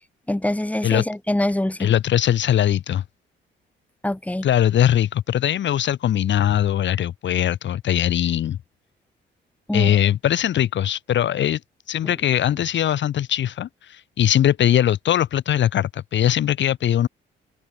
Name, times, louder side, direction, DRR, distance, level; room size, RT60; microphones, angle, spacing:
voice 1, 0.3-1.9 4.0-4.5 9.7-10.0 12.0-12.1, left 1 dB, 5° left, 4.2 m, -24 dB
voice 2, 1.8-3.0 4.4-8.6 9.7-11.6 11.9-17.1, left 11 dB, 70° left, 2.4 m, -21 dB
open air
cardioid pair, 90°, 20 cm